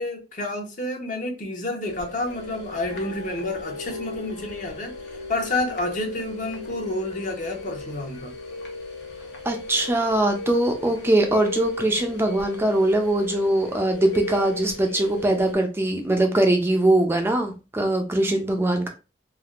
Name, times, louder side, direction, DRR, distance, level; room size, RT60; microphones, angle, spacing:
voice 1, 0.0-8.3, left 2 dB, 50° left, 0.8 m, -29 dB
sound 1, 1.8-15.5, left 2 dB, 70° left, 1.0 m, -36 dB
voice 2, 9.4-18.9, right 1 dB, 15° right, 0.4 m, -22 dB
3.3 x 2.5 x 2.3 m
head